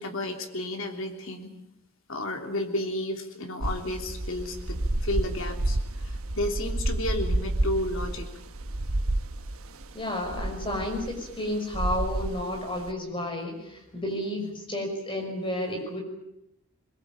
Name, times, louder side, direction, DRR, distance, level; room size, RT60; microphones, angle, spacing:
voice 1, 0.0-1.6 2.1-5.8 6.0-8.3 14.4-14.5, left 1 dB, 65° left, 4 dB, 3.3 m, -32 dB
sound 1, 3.6-12.9, right 1 dB, 70° right, 1.2 m, -30 dB
voice 2, 9.9-16.0, left 1 dB, 25° left, 2 dB, 5.9 m, -31 dB
23.0 x 21.5 x 8.9 m, 0.84 s
head